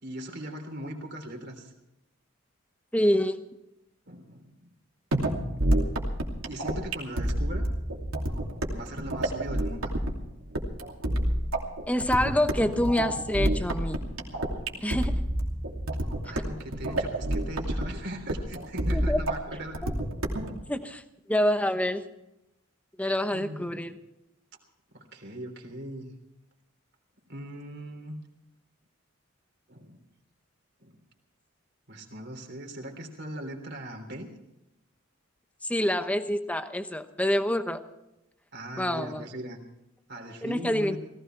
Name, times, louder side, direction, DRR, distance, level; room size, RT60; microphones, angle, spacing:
voice 1, 0.0-1.7 4.0-4.7 6.5-7.7 8.7-10.0 14.7-14.9 16.2-19.8 23.3-23.8 24.9-26.1 27.3-28.2 29.7-30.0 30.8-31.0 31.9-34.3 38.5-39.6 40.1-41.0, right 1 dB, 55° right, 3 dB, 3.3 m, -39 dB
voice 2, 2.9-3.4 11.9-14.0 14.8-15.2 18.9-19.2 19.8-19.9 20.7-21.0 21.3-22.0 23.0-24.0 35.6-37.8 38.8-39.2 40.4-41.0, left 1 dB, 5° left, 9 dB, 1.0 m, -26 dB
sound 1, 5.1-20.5, right 1 dB, 90° right, 2.8 m, -29 dB
18.0 x 16.0 x 4.6 m, 0.90 s
head